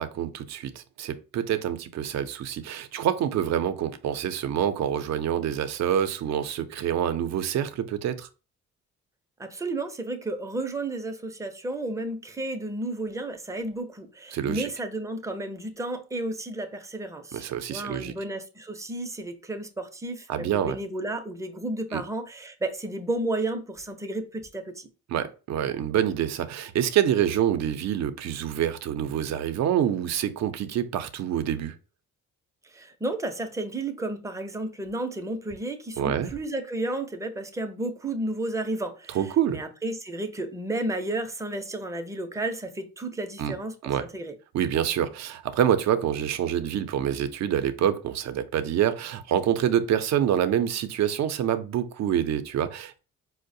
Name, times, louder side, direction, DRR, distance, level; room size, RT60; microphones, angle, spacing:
voice 1, 0.0-8.3 14.3-14.7 17.3-18.1 20.3-20.8 21.9-22.0 25.1-31.8 36.0-36.3 39.1-39.6 43.4-43.5 43.8-44.1 44.5-53.0, right 10 dB, 60° right, 0.5 m, -26 dB
voice 2, 9.4-24.9 32.6-44.4, right 2 dB, 10° right, 0.5 m, -32 dB
4.5 x 2.1 x 2.5 m
cardioid pair, 90°, 30 cm